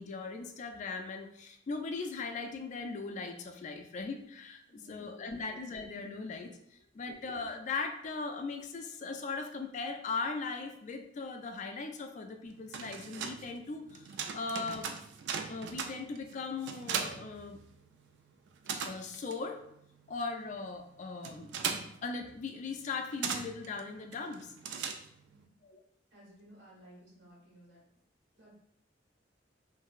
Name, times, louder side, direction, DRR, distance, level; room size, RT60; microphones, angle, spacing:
voice 1, 0.0-15.0 15.5-17.6 18.8-19.6 20.1-24.5 25.6-25.8, left 4 dB, 40° left, 5 dB, 0.3 m, -39 dB
voice 2, 4.6-5.5 6.9-7.2 25.2-25.6 26.1-27.8 28.4-28.5, right 1 dB, 85° right, -5 dB, 1.3 m, -58 dB
sound 1, 12.5-18.1 18.3-25.4, right 6 dB, 65° right, 0.3 m, -40 dB
2.9 x 2.5 x 2.3 m, 0.72 s
head